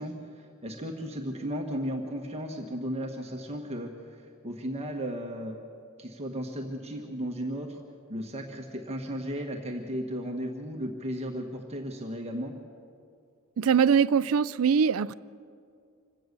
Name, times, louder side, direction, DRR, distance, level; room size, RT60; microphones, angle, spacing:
voice 1, 0.0-5.6 6.0-7.8 8.1-12.5, equal, 30° right, 1.4 m, -35 dB
voice 2, 13.6-15.1, right 6 dB, 70° right, 0.4 m, -22 dB
26.0 x 17.0 x 6.8 m
head